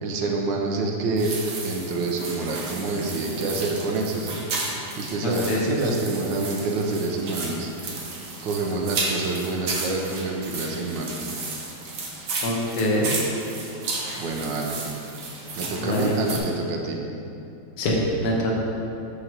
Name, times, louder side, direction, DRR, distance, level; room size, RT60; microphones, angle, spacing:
voice 1, 0.0-1.3 1.6-4.4 5.0-7.7 8.4-11.3 12.8-12.9 14.2-14.8 15.5-17.0, right 3 dB, 75° right, 1 dB, 1.3 m, -27 dB
sound 1, 1.2-16.4, right 3 dB, 55° right, 1.0 m, -33 dB
voice 2, 5.2-5.7 12.4-13.1 15.8-16.1 17.8-18.5, left 1 dB, 60° left, -3 dB, 1.3 m, -24 dB
6.5 x 3.0 x 5.8 m, 2.7 s
omnidirectional pair, 2.1 m